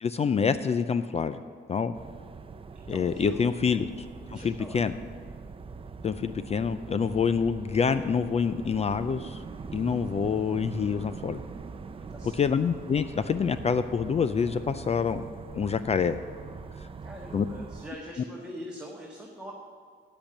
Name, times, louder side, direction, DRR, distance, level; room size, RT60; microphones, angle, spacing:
voice 1, 0.0-1.4 1.7-1.9 2.9-3.9 4.4-4.9 6.0-9.4 9.7-11.4 12.3-15.3 15.5-16.2 17.3-17.5, left 6 dB, 30° left, 12 dB, 0.4 m, -26 dB
sound 1, 1.9-17.9, right 4 dB, 25° right, 0.6 m, -42 dB
voice 2, 2.9-3.4 4.3-4.8 12.1-12.3 17.0-19.5, equal, 5° right, -3 dB, 1.5 m, -42 dB
8.7 x 7.9 x 7.2 m, 2.1 s
cardioid pair, 90°, 20 cm